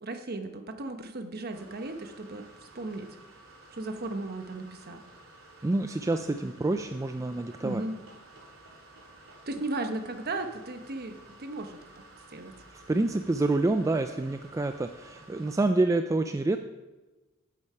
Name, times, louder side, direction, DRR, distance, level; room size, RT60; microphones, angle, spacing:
voice 1, 0.0-3.1 3.7-5.0 7.6-8.0 9.5-11.8 12.3-12.5, right 2 dB, 50° right, 7 dB, 1.0 m, -36 dB
sound 1, 1.5-15.6, right 2 dB, 80° right, 3.0 m, -53 dB
voice 2, 5.6-7.8 12.7-16.6, right 2 dB, 15° right, 7 dB, 0.3 m, -27 dB
8.6 x 8.4 x 5.6 m, 1.1 s
head